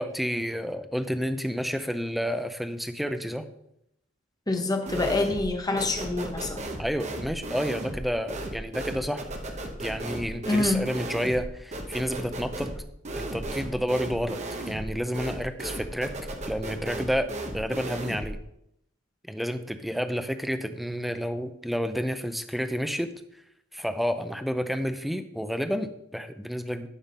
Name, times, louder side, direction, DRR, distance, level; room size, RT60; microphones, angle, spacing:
voice 1, 0.0-3.5 6.8-9.3 9.8-12.7 13.2-16.1 16.5-18.4 19.3-23.1 23.7-26.9, equal, ahead, 9 dB, 0.5 m, -30 dB
voice 2, 4.5-6.6 10.5-10.8, left 2 dB, 20° left, 4 dB, 1.0 m, -26 dB
sound 1, 4.9-5.5 5.8-18.4, right 1 dB, 35° right, 1.0 m, -35 dB
11.5 x 3.8 x 5.2 m, 0.79 s
head